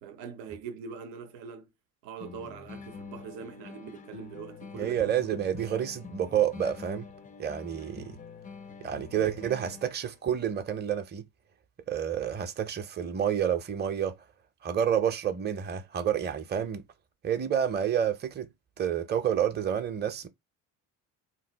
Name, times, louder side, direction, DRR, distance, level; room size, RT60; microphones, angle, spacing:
voice 1, 0.0-1.7 2.0-5.1, right 6 dB, 85° right, 0.7 m, -42 dB
sound 1, 2.2-10.2, left 5 dB, 20° left, 0.4 m, -46 dB
voice 2, 4.8-7.1 7.4-8.2 8.8-11.2 11.9-14.1 14.6-16.8 17.2-18.5 18.8-20.3, right 9 dB, 25° right, 0.6 m, -29 dB
2.6 x 2.0 x 3.9 m
supercardioid pair, 70°, 42 cm